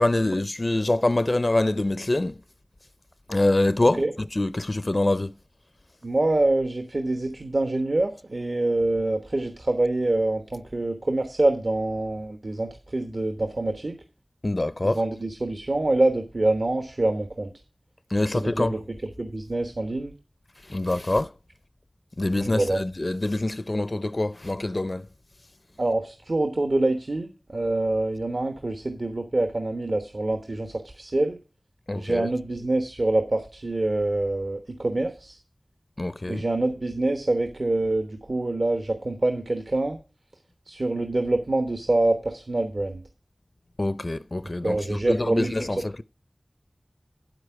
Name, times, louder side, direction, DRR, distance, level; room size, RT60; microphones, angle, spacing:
voice 1, 0.0-2.3 3.3-5.3 14.4-15.0 18.1-18.8 20.7-21.3 22.2-25.0 31.9-32.3 36.0-36.4 43.8-46.0, left 2 dB, 50° left, 0.4 m, -25 dB
voice 2, 6.0-13.9 14.8-17.5 18.2-18.8 19.2-20.1 22.3-22.8 25.8-31.4 31.9-35.4 36.2-40.0 40.7-43.0 44.6-45.8, right 2 dB, 65° right, 1.1 m, -25 dB
9.1 x 8.2 x 4.6 m
wide cardioid pair, 45°, 0 cm